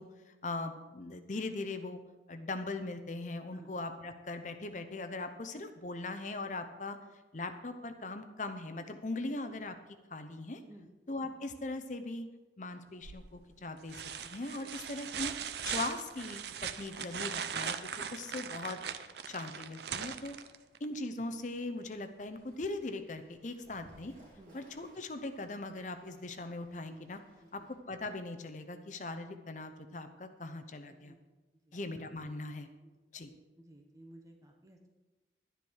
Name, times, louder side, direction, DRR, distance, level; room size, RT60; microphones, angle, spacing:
voice 1, 0.0-2.0 2.3-7.0 7.3-9.8 10.1-10.6 11.1-12.3 12.6-15.3 15.6-17.8 18.1-18.8 19.3-20.4 20.8-24.1 24.5-27.2 27.5-27.6 27.9-31.2 31.7-32.7 33.1-33.3, left 2 dB, 45° left, 8 dB, 0.8 m, -40 dB
sound 1, 13.0-13.4 13.9-20.8 22.6-22.7, right 7 dB, 70° right, 0.6 m, -39 dB
Fowl / Bird, 22.3-27.8, right 1 dB, 50° right, 4.8 m, -63 dB
voice 2, 30.9-31.3 31.7-31.8 32.8-32.9 33.6-34.9, right 1 dB, 20° right, 2 dB, 1.1 m, -56 dB
11.5 x 10.0 x 4.7 m, 1.2 s
head